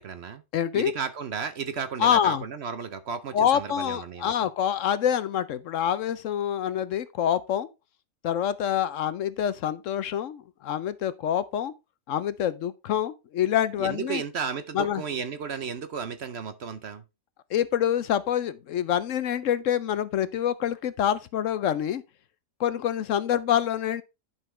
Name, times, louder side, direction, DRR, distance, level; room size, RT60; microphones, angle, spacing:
voice 1, 0.0-0.4 0.7-4.3 13.8-17.0, right 6 dB, 55° right, 0.8 m, -33 dB
voice 2, 0.5-0.9 2.0-2.4 3.3-7.7 8.2-11.7 12.1-14.2 14.7-15.0 17.5-22.0 22.6-24.0, left 10 dB, 65° left, 0.9 m, -26 dB
11.0 x 5.8 x 3.2 m
omnidirectional pair, 1.5 m